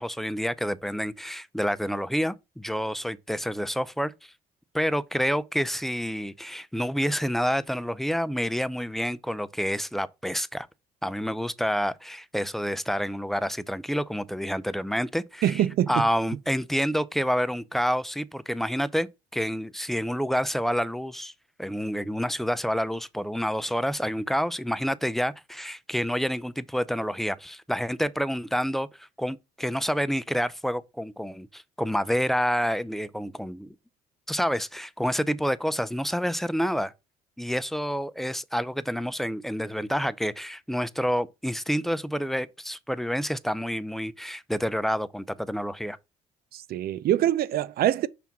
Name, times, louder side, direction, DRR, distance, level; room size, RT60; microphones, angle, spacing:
voice 1, 0.0-4.3 4.7-10.7 11.0-15.6 15.9-21.3 21.6-33.7 34.3-36.9 37.4-46.0, equal, ahead, 0.5 m, -28 dB
voice 2, 15.4-16.0 46.5-48.1, right 12 dB, 65° right, 0.5 m, -24 dB
6.0 x 3.4 x 5.9 m
supercardioid pair, 70°, 17 cm